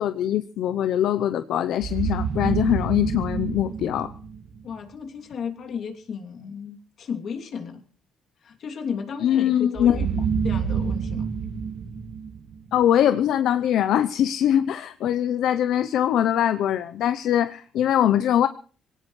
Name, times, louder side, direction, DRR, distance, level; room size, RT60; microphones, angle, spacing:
voice 1, 0.0-4.1 9.2-10.0 12.7-18.5, left 10 dB, 80° left, 12 dB, 0.7 m, -22 dB
sound 1, 1.8-4.8 9.8-13.0, right 6 dB, 60° right, 1.9 m, -28 dB
voice 2, 4.6-7.8 8.4-11.3, left 6 dB, 60° left, 4 dB, 2.8 m, -34 dB
22.5 x 17.5 x 3.2 m, 0.39 s
cardioid pair, 90°, 0 cm